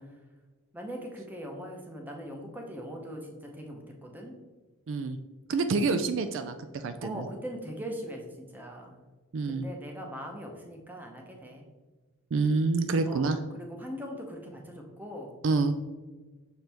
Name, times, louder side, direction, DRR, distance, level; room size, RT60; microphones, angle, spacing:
voice 1, 0.7-4.4 7.0-9.0 9.4-11.7 13.1-15.3, equal, 10° right, 1 dB, 0.7 m, -41 dB
voice 2, 4.9-5.2 5.5-7.3 9.3-9.7 12.3-13.4 15.4-15.7, right 3 dB, 60° right, 8 dB, 0.3 m, -27 dB
6.4 x 4.4 x 3.4 m, 1.3 s
head